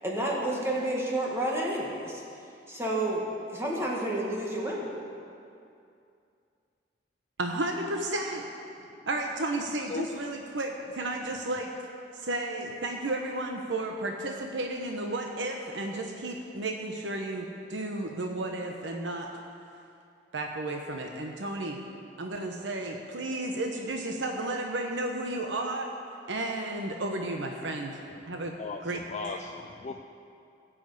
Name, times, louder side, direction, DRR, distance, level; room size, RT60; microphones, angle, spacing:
voice 1, 0.0-2.2 2.7-3.2 3.5-4.9, right 1 dB, 15° right, -3 dB, 1.9 m, -30 dB
voice 2, 7.4-8.4 9.0-11.7 12.1-19.3 20.3-21.8 22.2-25.9 26.3-28.0 28.3-28.5 28.8-29.0 29.2-29.4, right 2 dB, 85° right, 2 dB, 1.0 m, -33 dB
voice 3, 28.6-30.0, left 3 dB, 40° left, 4 dB, 0.5 m, -37 dB
15.5 x 6.2 x 8.1 m, 2.5 s
head